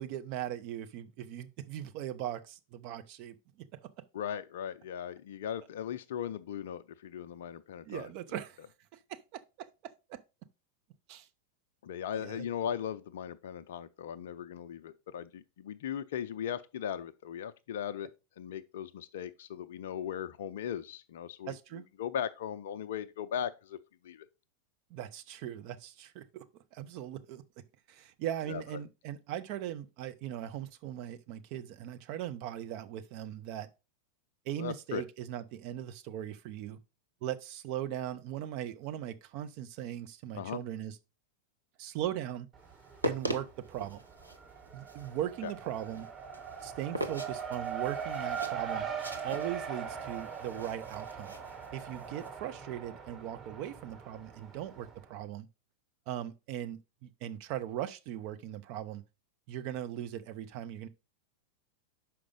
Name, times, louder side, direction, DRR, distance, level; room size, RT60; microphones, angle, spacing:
voice 1, 0.0-3.9 7.9-8.6 8.9-10.2 11.1-11.3 12.2-12.4 21.4-21.8 24.9-26.4 26.7-27.4 27.9-33.7 34.5-36.8 37.2-41.0 41.8-42.5 43.0-44.0 44.7-46.1 46.6-48.9 49.2-51.3 51.7-55.5 56.1-59.0 59.5-60.9, right 11 dB, 45° right, 0.7 m, -39 dB
voice 2, 4.1-8.4 11.8-18.1 18.4-23.8 24.0-24.3 28.5-28.6 34.6-35.0 40.3-40.6 45.4-45.5, left 9 dB, 55° left, 0.4 m, -38 dB
Race car auto racing, 42.5-43.3 43.6-54.9, right 7 dB, 20° right, 1.5 m, -40 dB
sound 1, 42.7-52.3, right 1 dB, 85° right, 0.8 m, -41 dB
5.9 x 5.0 x 5.1 m
figure-of-eight pair, 90°, 0 cm